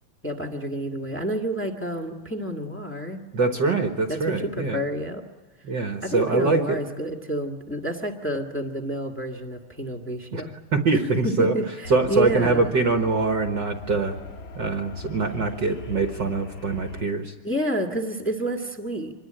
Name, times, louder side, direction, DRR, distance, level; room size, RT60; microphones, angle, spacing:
voice 1, 0.2-3.2 4.1-5.2 6.0-10.6 10.9-12.8 17.4-19.1, right 1 dB, 15° left, 2 dB, 0.4 m, -29 dB
voice 2, 3.3-4.8 5.6-6.8 10.3-10.4 10.7-11.6 11.9-14.2 14.5-17.3, right 3 dB, 55° right, 5 dB, 1.2 m, -23 dB
sound 1, 11.8-17.0, left 3 dB, 40° left, 1.9 m, -40 dB
26.0 x 21.5 x 8.9 m, 1.2 s
omnidirectional pair, 4.0 m